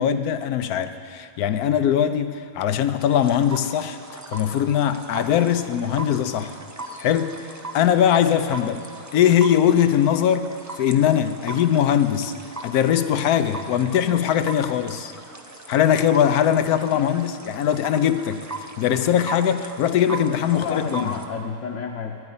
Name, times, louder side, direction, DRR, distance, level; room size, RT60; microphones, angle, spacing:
voice 1, 0.0-4.0 4.3-6.6 7.0-7.4 7.7-8.8 9.1-12.3 12.6-15.1 15.7-21.1, left 9 dB, 90° left, 1.2 m, -21 dB
sound 1, 3.1-21.3, right 2 dB, 20° right, 0.4 m, -39 dB
voice 2, 20.3-22.2, left 6 dB, 60° left, 1.1 m, -31 dB
11.0 x 9.6 x 9.5 m
omnidirectional pair, 1.5 m